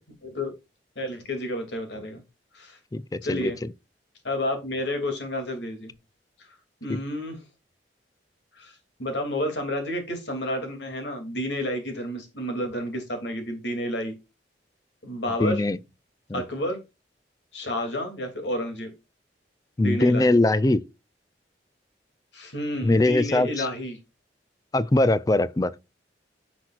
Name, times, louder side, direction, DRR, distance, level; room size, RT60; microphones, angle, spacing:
voice 1, 1.0-2.2 2.5-2.8 3.2-3.6 4.2-5.9 6.4-6.5 6.8-7.4 8.5-14.1 15.0-15.6 16.3-16.8 17.5-18.9 19.8-20.2 22.3-24.0, left 1 dB, 80° left, 2.6 m, -30 dB
voice 2, 2.9-3.5 6.9-7.0 15.4-15.8 16.3-16.4 19.8-20.8 22.8-23.7 24.7-25.7, left 2 dB, 20° left, 0.4 m, -21 dB
10.0 x 6.1 x 2.4 m
head